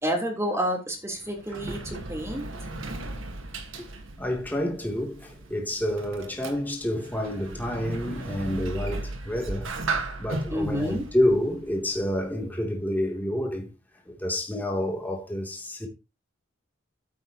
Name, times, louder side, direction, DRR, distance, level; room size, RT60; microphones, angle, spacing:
voice 1, 0.0-3.1 10.5-11.0, equal, 15° right, 3.3 m, -30 dB
Sliding door, 1.0-12.4, right 2 dB, 65° right, 1.5 m, -36 dB
voice 2, 4.2-13.7 14.1-15.9, left 1 dB, 10° left, 2.8 m, -29 dB
14.5 x 8.2 x 2.9 m
head